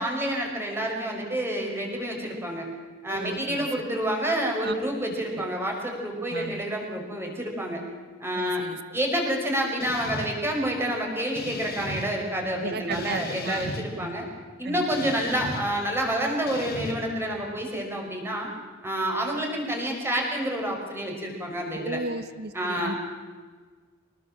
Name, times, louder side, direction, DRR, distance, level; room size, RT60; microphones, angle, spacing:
voice 1, 0.0-2.7 3.0-7.8 8.2-8.6 8.9-14.3 14.6-18.5 18.8-22.0 22.5-23.0, equal, 10° right, 0 dB, 5.5 m, -28 dB
voice 2, 3.1-3.6 4.6-4.7 5.3-5.5 6.3-6.6 8.3-8.8 12.6-13.7 14.0-14.1 14.6-15.2 21.7-22.9, right 3 dB, 55° right, 13 dB, 1.2 m, -35 dB
sound 1, 9.8-10.3 11.4-12.1 12.9-13.9 14.9-15.6 16.5-16.9, left 1 dB, 50° left, 3.9 m, -36 dB
25.0 x 20.0 x 7.5 m, 1.5 s
head